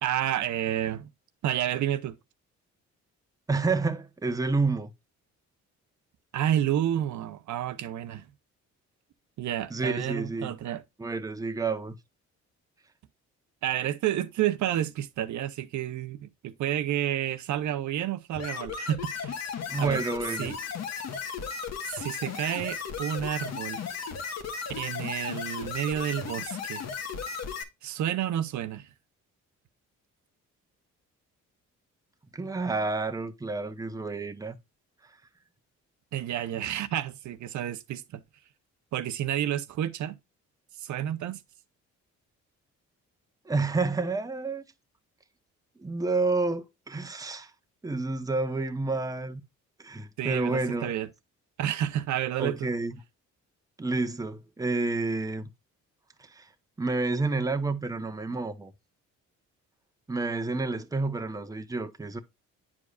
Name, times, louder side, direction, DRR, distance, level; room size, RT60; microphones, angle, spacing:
voice 1, 0.0-1.1 1.4-2.2 6.3-8.3 9.4-10.8 13.6-19.4 19.8-20.0 20.4-20.6 21.9-23.8 24.8-26.8 27.8-28.9 36.1-38.2 38.9-40.2 40.8-41.4 50.2-51.1 51.6-52.7, right 11 dB, 70° right, 0.7 m, -30 dB
voice 2, 3.5-4.9 9.7-10.5 11.0-11.9 19.7-20.5 32.3-34.6 43.5-44.6 45.8-47.5 47.8-49.4 49.8-50.9 52.4-52.9 53.8-55.5 56.2-56.5 56.8-58.7 60.1-62.2, right 3 dB, 10° right, 0.8 m, -29 dB
sound 1, 18.4-27.6, left 6 dB, 60° left, 1.4 m, -35 dB
9.5 x 4.8 x 2.4 m
cardioid pair, 90°, 30 cm